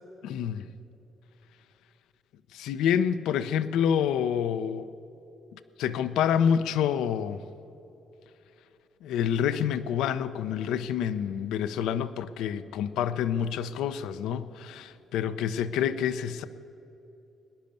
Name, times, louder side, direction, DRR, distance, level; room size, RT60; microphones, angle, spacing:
voice 1, 0.2-0.7 2.5-4.9 5.8-7.4 9.0-16.5, left 8 dB, 90° left, 0.5 m, -27 dB
20.0 x 10.5 x 6.8 m
cardioid pair, 90°, 0 cm